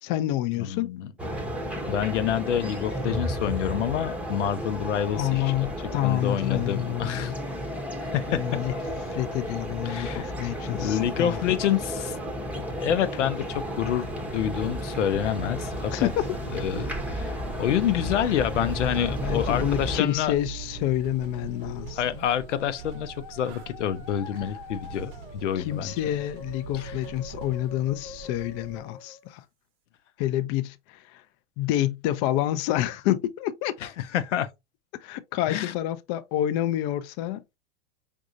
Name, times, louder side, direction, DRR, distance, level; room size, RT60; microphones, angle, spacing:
voice 1, 0.0-0.9 5.2-7.4 8.3-8.7 9.1-11.6 15.9-16.3 19.2-22.2 25.6-29.4 30.2-31.2 31.6-33.7 35.0-37.4, left 13 dB, 45° left, 0.5 m, -28 dB
voice 2, 0.6-1.1 1.9-5.5 6.0-7.3 8.0-8.6 9.8-10.4 10.7-12.2 12.5-16.1 16.5-20.4 22.0-25.9 26.7-26.9 33.8-34.5 35.5-35.7, left 10 dB, 85° left, 0.7 m, -28 dB
sound 1, 1.2-20.0, equal, 5° right, 0.7 m, -33 dB
sound 2, 13.5-28.8, right 8 dB, 45° right, 0.8 m, -43 dB
Musical instrument, 16.3-29.4, left 7 dB, 60° left, 0.9 m, -47 dB
4.9 x 2.6 x 2.6 m
hypercardioid pair, 115°, 35 cm